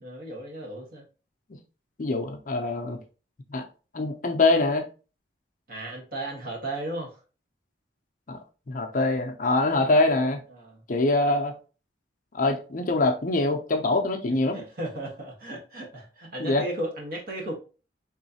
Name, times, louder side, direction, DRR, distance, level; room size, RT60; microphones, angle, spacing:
voice 1, 0.0-1.0 5.7-7.2 10.5-10.8 14.5-17.6, right 1 dB, 50° right, -2 dB, 1.3 m, -35 dB
voice 2, 2.0-3.0 3.5-3.6 3.9-4.8 8.3-8.4 8.7-10.4 10.9-11.5 12.3-14.6 16.4-16.6, left 2 dB, 45° left, 4 dB, 0.5 m, -24 dB
3.7 x 3.1 x 2.7 m, 0.34 s
head